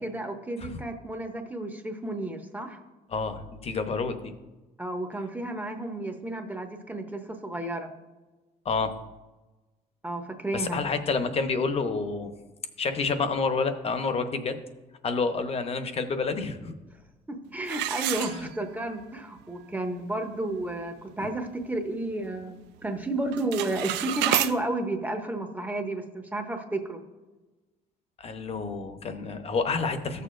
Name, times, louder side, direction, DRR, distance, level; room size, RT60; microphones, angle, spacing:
voice 1, 0.0-2.8 4.8-7.9 10.0-10.8 17.3-27.0, right 2 dB, 10° right, 5 dB, 0.8 m, -32 dB
voice 2, 3.1-4.3 8.6-8.9 10.5-12.3 12.8-14.6 15.0-16.7 18.1-18.5 28.2-30.2, left 4 dB, 35° left, 8 dB, 0.9 m, -29 dB
sound 1, 17.7-18.9 19.4-19.5 20.0-20.1 20.5-20.8 21.3-22.4 22.7-23.0 23.3-24.5, right 13 dB, 90° right, 0.5 m, -30 dB
14.0 x 6.7 x 2.5 m, 1.2 s
cardioid pair, 110°, 17 cm